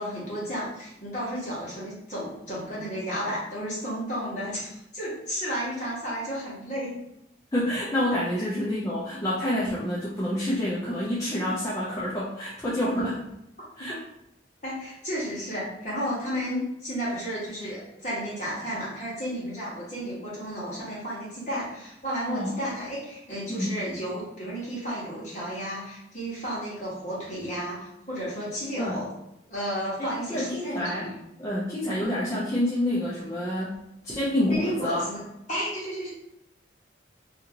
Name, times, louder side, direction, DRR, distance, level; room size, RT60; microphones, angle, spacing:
voice 1, 0.0-6.9 8.4-8.5 13.0-13.1 13.8-13.9 14.6-29.1 29.5-31.1 34.5-36.1, equal, 40° left, -8 dB, 1.3 m, -33 dB
voice 2, 7.5-13.1 13.8-14.0 22.3-22.5 23.5-23.7 28.8-29.0 30.0-31.1 31.4-33.7 34.0-35.1, left 1 dB, 15° left, -8 dB, 0.4 m, -28 dB
2.7 x 2.5 x 2.8 m, 0.83 s
head